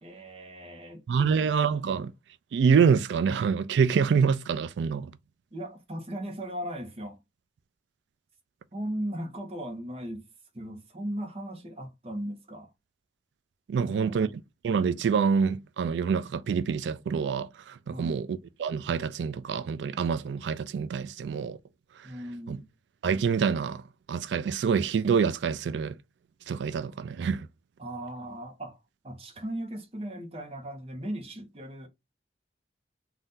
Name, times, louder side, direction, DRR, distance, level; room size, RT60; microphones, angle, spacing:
voice 1, 0.0-1.5 5.5-7.2 8.7-10.3 10.5-12.7 13.8-14.3 17.9-18.2 22.0-22.7 27.8-28.8 29.0-31.9, right 1 dB, 35° right, 0.7 m, -37 dB
voice 2, 1.1-2.1 2.5-5.1 13.7-14.3 14.6-18.3 18.6-21.6 22.5-22.6 23.0-23.8 24.1-25.9 26.5-27.5, right 6 dB, 85° right, 0.3 m, -26 dB
2.6 x 2.3 x 3.5 m
head